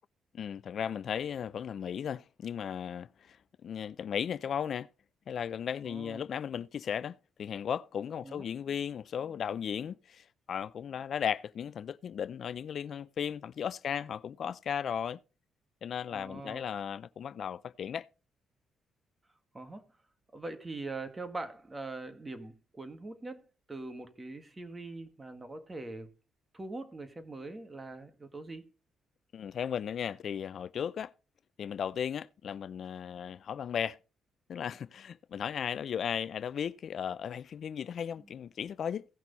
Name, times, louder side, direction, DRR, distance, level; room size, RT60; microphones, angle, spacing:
voice 1, 0.3-3.4 3.6-4.9 5.3-15.2 15.8-18.1 29.3-31.1 31.6-34.0 34.5-39.1, left 8 dB, 60° left, 0.4 m, -36 dB
voice 2, 5.8-6.3 8.2-8.5 16.1-16.6 19.5-19.9 20.3-26.1 26.5-28.7 38.2-38.4, right 2 dB, 20° right, 1.8 m, -42 dB
16.5 x 6.1 x 4.0 m
cardioid pair, 90°, 0 cm